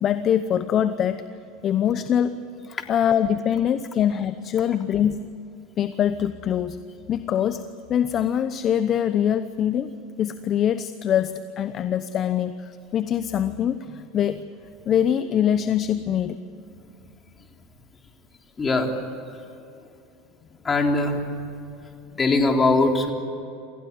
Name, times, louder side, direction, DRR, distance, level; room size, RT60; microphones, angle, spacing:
voice 1, 0.0-1.2 1.6-2.4 2.7-5.3 5.8-6.8 7.1-14.5 14.9-16.4, left 9 dB, 40° left, 12 dB, 0.9 m, -23 dB
voice 2, 18.6-18.9 19.3-19.4 20.6-21.3 21.8-23.1, left 2 dB, 20° left, 2 dB, 3.5 m, -22 dB
27.5 x 16.0 x 9.6 m, 2.6 s
supercardioid pair, 105°, 0 cm